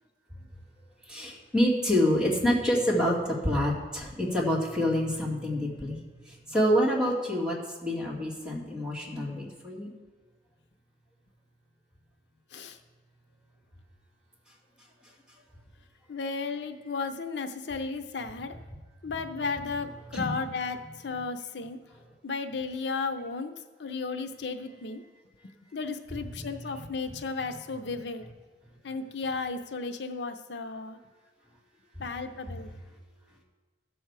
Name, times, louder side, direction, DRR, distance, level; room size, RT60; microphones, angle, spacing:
voice 1, 1.1-6.0 6.5-7.6 7.8-9.9 20.1-20.4, equal, 5° right, -5 dB, 2.1 m, -27 dB
voice 2, 16.1-18.5 19.0-21.8 22.2-23.5 23.8-25.0 25.7-28.2 28.8-31.0 32.0-32.7, left 4 dB, 80° left, 8 dB, 0.6 m, -34 dB
14.0 x 7.0 x 4.7 m, 1.3 s
head